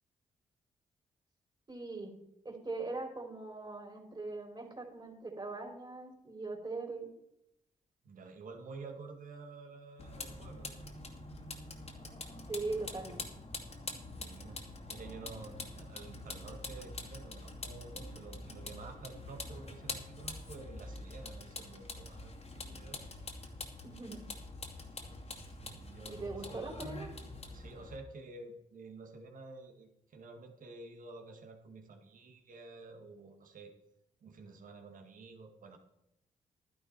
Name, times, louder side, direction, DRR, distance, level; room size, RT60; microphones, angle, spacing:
voice 1, 1.7-2.1 2.4-7.1 12.5-13.2 23.8-24.2 26.1-27.1, right 3 dB, 30° right, 3 dB, 3.8 m, -41 dB
voice 2, 8.0-11.0 14.0-14.6 14.9-23.0 25.5-26.6 27.5-33.7 34.2-35.8, right 3 dB, 65° right, 4 dB, 2.0 m, -50 dB
Vehicle, 10.0-28.0, left 2 dB, 45° left, 2.4 m, -45 dB
11.5 x 10.5 x 4.6 m, 0.84 s
hypercardioid pair, 45°, 15 cm